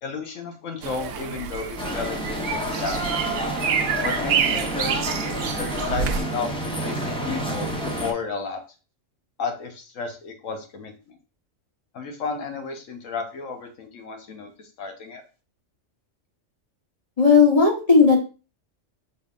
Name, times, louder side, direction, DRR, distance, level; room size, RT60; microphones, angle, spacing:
voice 1, 0.0-3.3 4.0-8.6 9.4-11.2 11.9-15.2, left 4 dB, 85° left, 4 dB, 1.2 m, -33 dB
sound 1, 0.8-6.2, right 7 dB, 75° right, 0.9 m, -28 dB
sound 2, 1.8-8.1, right 1 dB, 5° left, 0.6 m, -29 dB
voice 2, 17.2-18.2, left 5 dB, 30° left, -1 dB, 1.1 m, -15 dB
6.3 x 3.5 x 2.4 m, 0.33 s
omnidirectional pair, 1.3 m